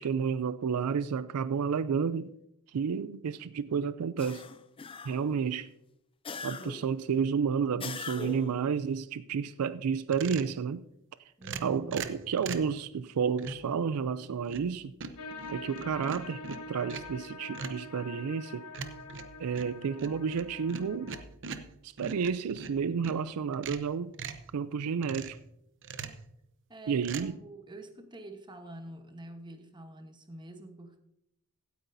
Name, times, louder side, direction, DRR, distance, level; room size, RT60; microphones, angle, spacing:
voice 1, 0.0-2.3 2.7-4.5 5.1-5.7 6.4-10.8 11.6-14.9 15.5-18.7 19.4-21.1 21.8-24.1 24.5-25.4 26.9-27.4, right 6 dB, 80° right, 0.4 m, -31 dB
sound 1, 4.2-5.4 6.2-7.0 7.8-8.6, left 5 dB, 25° left, 0.4 m, -41 dB
sound 2, 10.1-10.6 11.4-12.7 13.4-13.7 14.2-14.7 15.0-17.2 17.5-17.9 18.7-23.2 23.5-24.5 25.0-25.4 25.8-26.3 27.0-27.2, right 5 dB, 55° right, 0.8 m, -41 dB
voice 2, 11.4-12.0 26.7-31.0, right 1 dB, 20° right, 1.0 m, -47 dB
sound 3, 15.2-21.2, left 3 dB, 85° left, 1.4 m, -45 dB
16.0 x 9.5 x 2.7 m
head